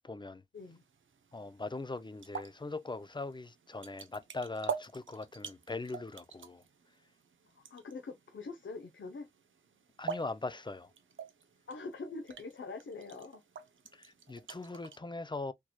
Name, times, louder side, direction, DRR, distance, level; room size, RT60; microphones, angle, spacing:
voice 1, 0.0-0.4 1.3-6.6 10.0-10.9 13.9-15.5, left 3 dB, 25° left, 0.5 m, -41 dB
sound 1, 0.6-15.0, right 6 dB, 80° right, 0.7 m, -46 dB
voice 2, 7.5-9.3 11.7-13.4, left 3 dB, 75° left, 0.8 m, -44 dB
4.5 x 3.0 x 2.3 m
cardioid pair, 50°, 20 cm